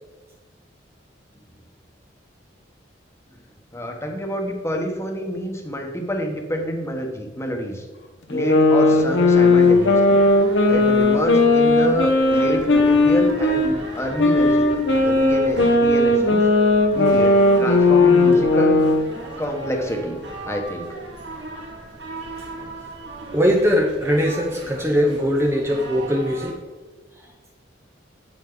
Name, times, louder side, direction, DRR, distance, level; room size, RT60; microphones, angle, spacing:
voice 1, 3.7-7.9 8.3-10.2 10.7-14.7 15.0-16.5 16.9-18.9 19.4-20.2 20.4-21.0, equal, 15° left, 2 dB, 1.2 m, -27 dB
sound 1, 8.3-13.7 14.2-19.1, left 2 dB, 75° left, 1.1 m, -16 dB
sound 2, 8.9-26.5, right 2 dB, 70° right, 2.2 m, -37 dB
voice 2, 23.3-26.6, equal, 15° right, 1 dB, 0.8 m, -20 dB
8.9 x 8.3 x 3.9 m, 1.3 s
head